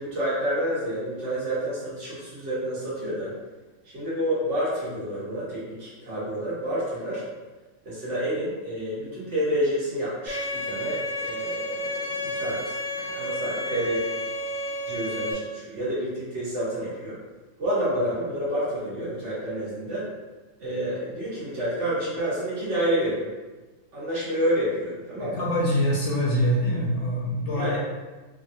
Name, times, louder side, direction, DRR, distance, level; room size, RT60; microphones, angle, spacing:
voice 1, 0.0-3.3 3.9-7.2 7.8-14.0 14.9-17.2 17.6-20.1 20.6-23.3 23.9-25.4 27.5-27.8, equal, 55° right, -9 dB, 1.4 m, -29 dB
Bowed string instrument, 10.3-15.3, left 1 dB, 90° right, 1.3 m, -31 dB
voice 2, 25.2-27.8, equal, 65° left, -4 dB, 0.9 m, -24 dB
3.1 x 2.4 x 2.7 m, 1.2 s
omnidirectional pair, 1.5 m